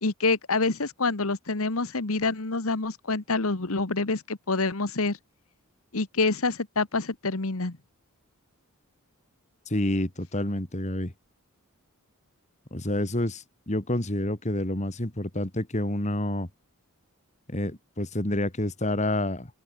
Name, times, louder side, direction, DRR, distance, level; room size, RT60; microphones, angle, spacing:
voice 1, 0.0-5.2 5.9-7.8, left 3 dB, 70° left, 1.5 m, -27 dB
voice 2, 9.7-11.1 12.7-16.5 17.5-19.5, left 1 dB, 30° left, 2.1 m, -28 dB
open air
head